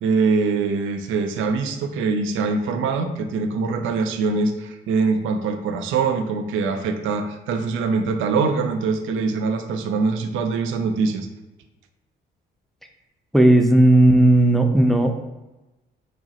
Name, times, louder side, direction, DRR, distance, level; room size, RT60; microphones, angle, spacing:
voice 1, 0.0-11.3, right 4 dB, 85° right, 7 dB, 0.4 m, -23 dB
voice 2, 13.3-15.2, right 1 dB, ahead, 4 dB, 0.4 m, -15 dB
4.7 x 2.1 x 2.8 m, 1.1 s
cardioid pair, 90°, 20 cm